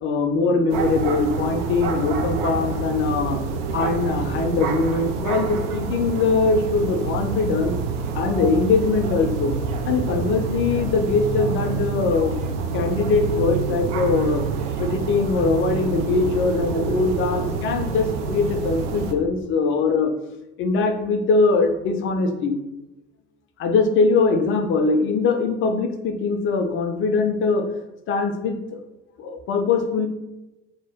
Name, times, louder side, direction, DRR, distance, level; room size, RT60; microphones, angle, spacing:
voice 1, 0.0-3.4 3.7-7.7 8.1-9.5 9.9-12.3 12.7-14.4 14.8-20.1 20.6-22.5 23.6-27.7 28.1-28.8 29.2-30.1, left 4 dB, 35° left, 5 dB, 0.5 m, -22 dB
sound 1, 0.7-19.1, right 5 dB, 60° right, 0.5 m, -27 dB
2.8 x 2.1 x 3.4 m, 0.98 s
figure-of-eight pair, 60°, 35 cm